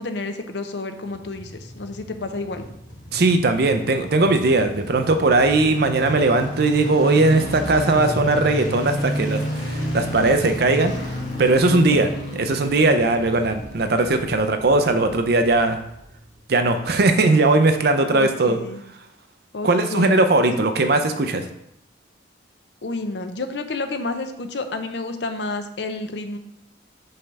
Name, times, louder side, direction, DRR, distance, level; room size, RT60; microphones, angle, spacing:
voice 1, 0.0-2.7 18.1-18.8 19.5-20.1 20.4-20.6 22.8-26.4, left 2 dB, 65° left, 7 dB, 0.6 m, -30 dB
sound 1, 1.1-16.3 16.5-16.6, equal, 45° left, 1.5 m, -32 dB
voice 2, 3.1-10.9 11.4-12.1 12.4-15.8 16.5-18.6 19.6-21.5, right 2 dB, 55° right, 7 dB, 0.6 m, -19 dB
5.4 x 3.4 x 5.4 m, 0.79 s
head